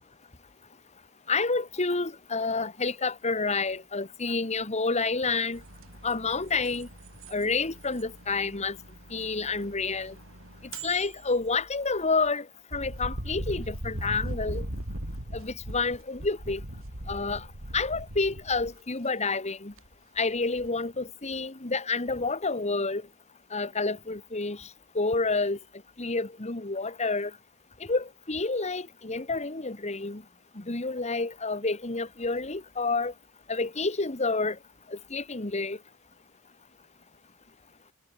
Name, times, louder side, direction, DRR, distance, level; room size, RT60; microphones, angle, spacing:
voice 1, 1.3-5.6 6.0-6.9 7.3-8.8 9.1-10.1 10.8-12.5 12.7-14.6 15.3-16.6 17.1-17.5 17.7-19.7 20.2-23.0 23.5-24.7 24.9-25.6 26.0-27.3 27.8-30.2 30.5-33.1 33.5-34.6 34.9-35.8, left 3 dB, 30° left, 1.6 m, -29 dB
sound 1, 5.5-12.3 12.7-18.8 19.8-20.2 20.6-20.7, right 1 dB, 65° right, 4.3 m, -40 dB
head